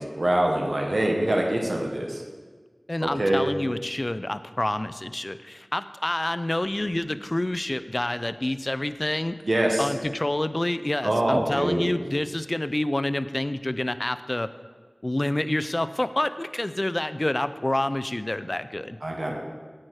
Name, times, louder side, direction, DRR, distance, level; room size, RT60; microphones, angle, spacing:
voice 1, 0.0-2.2 3.0-3.4 9.4-9.9 11.0-11.9 19.0-19.3, right 1 dB, 75° right, 1 dB, 1.2 m, -24 dB
voice 2, 2.9-9.4 9.8-14.5 15.0-19.0, left 1 dB, 40° left, 13 dB, 0.3 m, -28 dB
8.7 x 4.8 x 4.6 m, 1.5 s
wide cardioid pair, 40°, 0 cm